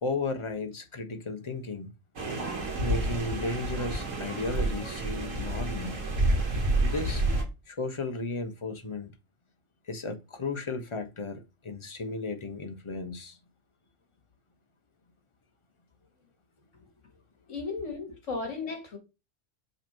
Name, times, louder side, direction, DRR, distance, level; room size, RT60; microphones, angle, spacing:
voice 1, 0.0-1.9 2.8-6.0 6.8-7.2 7.7-9.1 9.8-13.4, left 3 dB, 25° left, 0.9 m, -34 dB
sound 1, 2.2-7.4, right 2 dB, 85° right, 2.0 m, -29 dB
voice 2, 17.5-19.0, left 4 dB, 70° left, 2.6 m, -35 dB
5.9 x 5.4 x 4.5 m
omnidirectional pair, 1.3 m